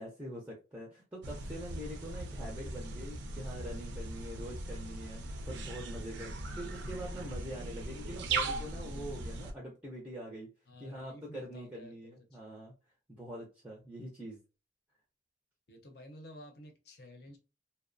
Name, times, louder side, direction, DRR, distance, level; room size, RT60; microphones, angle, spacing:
voice 1, 0.0-10.5 10.8-12.7 13.1-14.4, equal, 10° right, 0.4 m, -44 dB
sound 1, 1.2-9.5, right 3 dB, 70° right, 0.5 m, -39 dB
voice 2, 10.7-12.6 15.7-17.4, left 1 dB, 55° left, 0.6 m, -52 dB
2.8 x 2.0 x 2.5 m
head